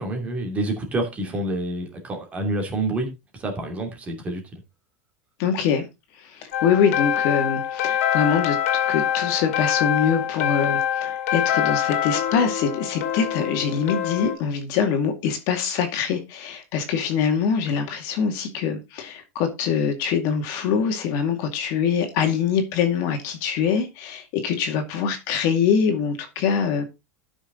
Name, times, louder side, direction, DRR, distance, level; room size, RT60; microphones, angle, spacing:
voice 1, 0.0-3.1 3.3-4.6, right 2 dB, 20° right, 2.8 m, -28 dB
voice 2, 5.4-5.8 6.2-8.6 8.9-26.8, left 7 dB, 50° left, 2.2 m, -24 dB
sound 1, 6.5-14.3, left 10 dB, 85° left, 2.3 m, -25 dB
12.5 x 6.2 x 3.9 m
supercardioid pair, 165°, 7 cm